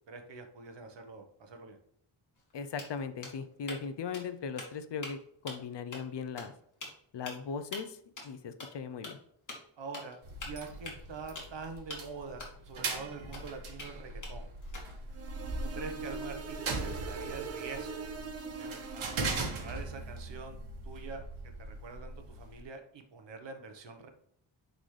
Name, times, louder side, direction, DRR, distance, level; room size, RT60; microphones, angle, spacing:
voice 1, 0.1-1.8 9.8-14.5 15.7-18.1 18.6-20.6 20.8-21.3 21.6-24.1, right 4 dB, 65° right, 5 dB, 1.2 m, -45 dB
sound 1, 2.4-2.5 2.8-3.8 4.1-4.3 4.6-5.1 5.5-5.7 5.9-6.0 6.4-6.5 6.8-6.9 7.3-7.4 7.7-7.8 8.2-8.3 8.6-8.7 9.0-9.1 9.5-9.6 9.9-10.1 10.4-11.5 11.9-12.0 12.4-12.5 12.9-13.0 13.3-13.9 14.2-15.0, left 2 dB, 40° left, 2.3 m, -43 dB
voice 2, 2.5-6.5 7.1-8.0 8.2-9.2, left 5 dB, 60° left, 11 dB, 0.7 m, -38 dB
sound 2, 10.2-22.6, right 3 dB, 85° right, 1.8 m, -40 dB
sound 3, 15.1-19.9, right 4 dB, 30° right, 0.6 m, -42 dB
10.0 x 4.0 x 3.2 m, 0.70 s
wide cardioid pair, 170°, 47 cm